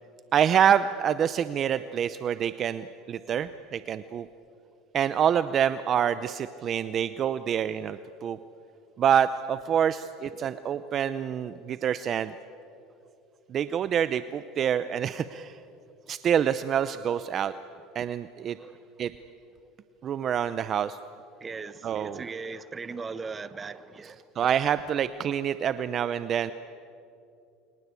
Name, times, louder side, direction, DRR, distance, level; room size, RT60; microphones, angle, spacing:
voice 1, 0.3-4.3 4.9-8.4 9.0-12.3 13.5-15.6 16.1-17.5 17.9-18.6 19.0-19.1 20.0-21.0 21.8-22.2 24.4-26.5, right 9 dB, 35° right, 0.7 m, -26 dB
voice 2, 18.5-18.9 21.4-24.2, right 4 dB, 20° right, 1.0 m, -39 dB
29.5 x 23.5 x 8.4 m
cardioid pair, 140°, 0 cm